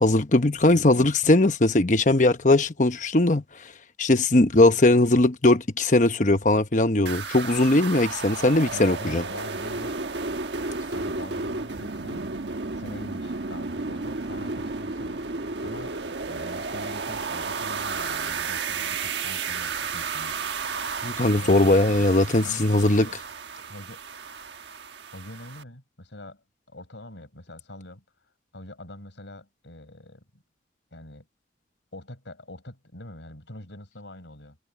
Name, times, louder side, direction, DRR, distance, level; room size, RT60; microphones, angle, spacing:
voice 1, 0.0-3.4 4.0-9.2 21.0-23.1, left 2 dB, 40° left, 1.1 m, -20 dB
voice 2, 0.6-1.3 8.7-10.0 10.9-15.2 15.6-20.4 21.4-22.1 22.4-23.2 23.6-24.0 25.1-28.0 28.5-30.4 30.9-31.3 31.9-34.6, left 1 dB, 85° left, 5.3 m, -43 dB
sound 1, 7.1-25.6, right 4 dB, 75° right, 1.3 m, -33 dB
head